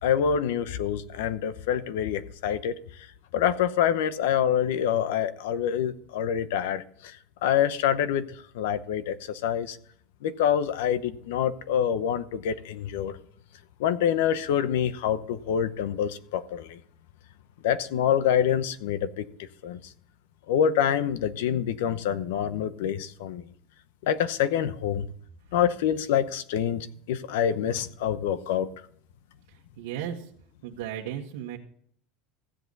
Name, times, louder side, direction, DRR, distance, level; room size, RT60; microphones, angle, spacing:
voice 1, 0.0-2.8 3.3-7.2 7.4-8.3 8.5-9.8 10.2-13.2 13.8-16.8 17.6-19.2 19.6-19.8 20.5-23.4 24.0-25.1 25.5-28.7, left 9 dB, 85° left, 0.8 m, -26 dB
voice 2, 29.5-30.3 30.6-31.6, right 10 dB, 90° right, 1.6 m, -35 dB
15.0 x 8.0 x 4.0 m
supercardioid pair, 160°, 0 cm